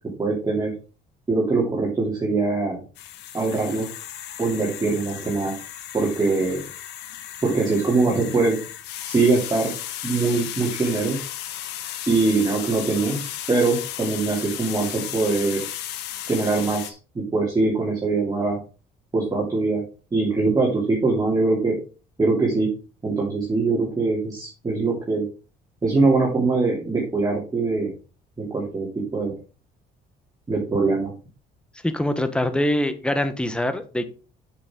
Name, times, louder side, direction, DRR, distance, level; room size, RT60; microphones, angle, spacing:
voice 1, 0.2-0.7 1.3-2.8 3.3-3.9 4.4-5.5 5.9-6.6 7.4-8.6 9.1-9.7 10.0-11.2 12.1-15.8 16.3-18.6 19.1-19.8 20.1-21.8 22.2-22.7 23.0-25.3 25.8-27.9 28.4-29.4 30.5-31.1, right 3 dB, 20° right, 2.9 m, -22 dB
sound 1, 2.9-16.9, left 11 dB, 90° left, 1.2 m, -35 dB
voice 2, 31.8-34.1, left 1 dB, 5° left, 1.1 m, -24 dB
7.4 x 6.9 x 3.7 m
cardioid pair, 110°, 17 cm